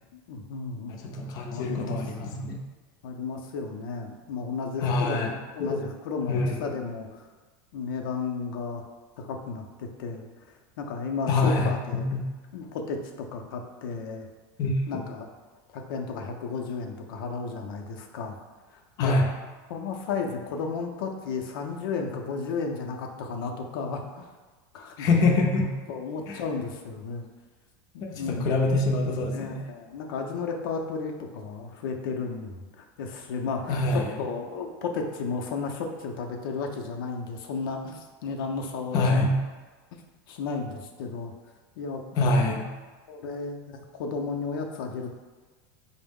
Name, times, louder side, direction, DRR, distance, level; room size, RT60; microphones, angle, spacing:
voice 1, 0.1-1.0 1.5-2.0 3.0-5.2 5.5-7.3 7.7-8.8 9.2-10.3 10.8-12.1 12.5-14.3 14.9-15.3 15.7-18.4 19.0-19.1 19.7-24.3 24.7-25.1 25.9-27.3 27.9-28.5 29.3-39.2 40.3-41.3 41.8-42.0 43.1-45.2, left 4 dB, 90° left, 2 dB, 0.5 m, -33 dB
voice 2, 0.9-2.5 4.8-5.3 5.6-5.8 6.3-6.6 11.3-12.2 14.6-15.0 19.0-19.3 25.0-25.7 26.3-26.4 28.1-29.6 33.7-34.1 38.9-39.3 42.2-42.7, left 2 dB, 35° left, 0 dB, 0.4 m, -25 dB
4.4 x 2.0 x 3.5 m, 1.4 s
supercardioid pair, 160°, 11 cm